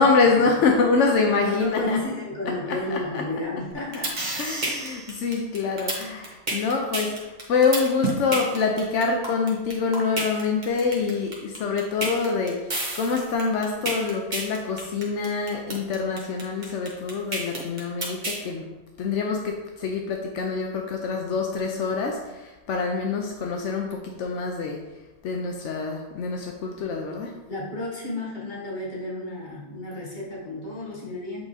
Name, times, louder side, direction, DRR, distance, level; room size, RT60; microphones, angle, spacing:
voice 1, 0.0-2.0 2.7-3.2 4.4-18.7 19.0-24.8 25.2-27.3, left 4 dB, 80° left, 2 dB, 1.0 m, -25 dB
voice 2, 1.3-4.6 27.5-31.5, left 2 dB, 40° left, -5 dB, 1.8 m, -32 dB
sound 1, 3.7-18.4, right 2 dB, 40° right, 1.4 m, -29 dB
8.1 x 3.5 x 4.1 m, 1.1 s
omnidirectional pair, 1.2 m